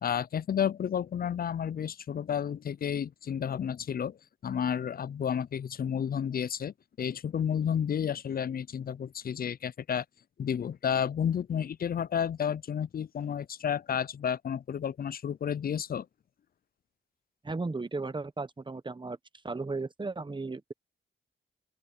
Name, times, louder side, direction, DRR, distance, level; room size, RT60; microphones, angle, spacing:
voice 1, 0.0-10.0 10.4-16.1, left 8 dB, 50° left, 0.4 m, -31 dB
voice 2, 17.4-19.2 19.4-20.7, right 3 dB, 25° right, 1.1 m, -35 dB
open air
cardioid pair, 75°, 20 cm